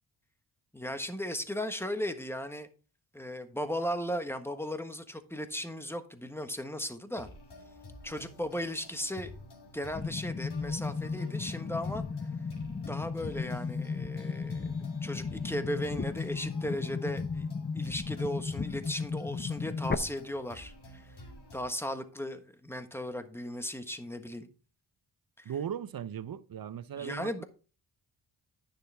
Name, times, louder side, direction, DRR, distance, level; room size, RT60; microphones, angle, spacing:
voice 1, 0.7-2.7 3.1-7.3 8.0-9.3 9.7-12.0 12.9-14.7 15.0-17.5 17.7-21.1 21.5-24.5 25.4-25.5 26.9-27.4, equal, 5° left, 1.3 m, -36 dB
sound 1, 7.2-21.6, left 2 dB, 55° left, 3.2 m, -50 dB
sound 2, 10.0-20.0, left 5 dB, 20° left, 0.7 m, -35 dB
voice 2, 25.4-27.4, right 9 dB, 45° right, 0.7 m, -38 dB
9.9 x 6.7 x 3.5 m
supercardioid pair, 50°, 48 cm